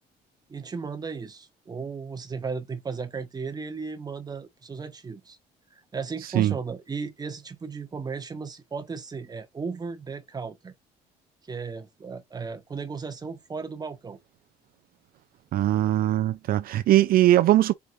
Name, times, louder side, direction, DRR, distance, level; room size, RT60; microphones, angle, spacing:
voice 1, 0.5-5.4 5.7-10.7 11.5-14.2, right 5 dB, 25° right, 1.0 m, -35 dB
voice 2, 15.5-17.7, right 14 dB, 60° right, 0.4 m, -20 dB
4.7 x 3.4 x 2.6 m
cardioid pair, 110°, 17 cm